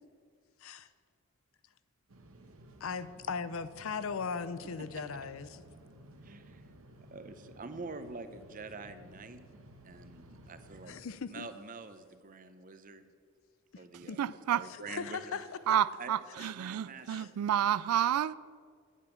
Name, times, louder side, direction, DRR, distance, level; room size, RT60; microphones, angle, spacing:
sound 1, 2.1-11.0, right 1 dB, 65° right, 1.0 m, -55 dB
voice 1, 2.8-5.6 10.9-11.5 14.0-14.2 14.9-15.5 16.4-16.5 17.1-17.3, left 5 dB, 65° left, 0.5 m, -38 dB
voice 2, 6.2-6.7 7.1-9.4 9.8-11.0 11.3-13.1 13.8-14.2 14.5-15.4 16.0-17.7, right 3 dB, 35° right, 0.7 m, -46 dB
voice 3, 13.9-14.7 15.7-18.3, right 10 dB, 85° right, 0.3 m, -30 dB
8.9 x 8.2 x 7.2 m
head